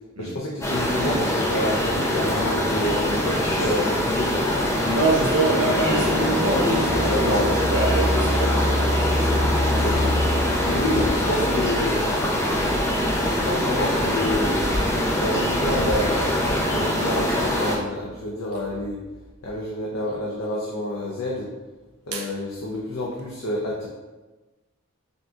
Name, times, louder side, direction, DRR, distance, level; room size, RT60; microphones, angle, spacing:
voice 1, 0.2-4.7 7.0-7.5 9.6-10.1 10.6-12.1 13.3-14.6 15.1-19.0 19.4-21.5 22.1-23.9, left 1 dB, 75° left, -3 dB, 0.6 m, -28 dB
sound 1, 0.6-17.8, left 1 dB, 15° left, 0.4 m, -23 dB
voice 2, 4.8-8.9 22.1-22.3, right 2 dB, 85° right, 0 dB, 0.7 m, -25 dB
Engine, 5.1-5.2 5.9-11.8, left 1 dB, 65° right, 1.0 m, -27 dB
sound 2, 5.8-12.4, equal, 55° left, 1.0 m, -31 dB
5.3 x 2.7 x 2.3 m, 1.2 s
head